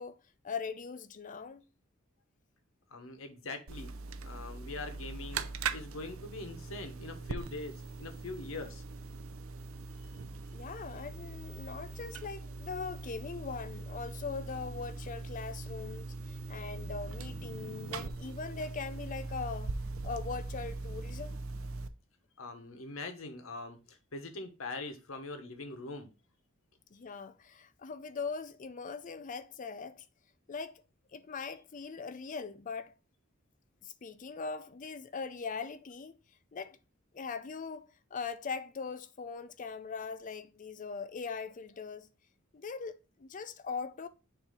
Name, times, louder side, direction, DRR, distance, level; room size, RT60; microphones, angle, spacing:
voice 1, 0.0-1.6 10.5-19.7 20.0-21.4 26.9-30.0 30.5-30.8 31.1-32.9 33.8-36.2 36.5-36.8 37.1-42.1 42.5-44.1, left 5 dB, 40° left, 0.5 m, -41 dB
voice 2, 2.9-3.9 4.2-5.4 5.7-8.8 22.4-26.1, left 3 dB, 70° left, 1.1 m, -42 dB
sound 1, 3.7-21.9, right 3 dB, 70° right, 0.5 m, -41 dB
7.0 x 2.8 x 5.5 m
head